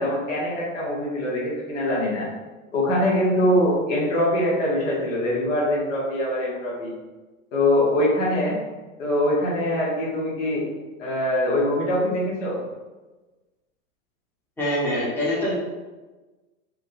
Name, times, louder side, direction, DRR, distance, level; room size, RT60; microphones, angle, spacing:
voice 1, 0.0-2.3 2.7-6.9 7.5-8.6 9.0-10.7 11.0-12.6, left 1 dB, 65° left, -4 dB, 1.2 m, -23 dB
voice 2, 14.6-15.5, left 1 dB, 5° left, -8 dB, 0.9 m, -24 dB
3.6 x 2.2 x 2.6 m, 1.2 s
hypercardioid pair, 105°, 40 cm